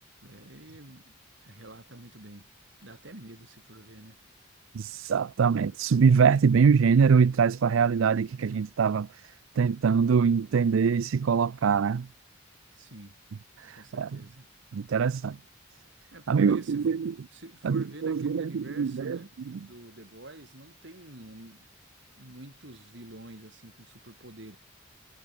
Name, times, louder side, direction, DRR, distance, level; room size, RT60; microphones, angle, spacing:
voice 1, 0.2-2.5 2.8-4.2 12.7-13.2 13.7-14.5 16.1-16.8 17.3-19.3 19.6-21.7 22.2-24.6, right 1 dB, 60° right, 3.0 m, -48 dB
voice 2, 4.7-9.2 9.6-12.1 13.6-14.2 14.7-15.4 16.3-17.1 17.6-19.2 19.5-19.6, right 6 dB, 80° right, 0.4 m, -23 dB
head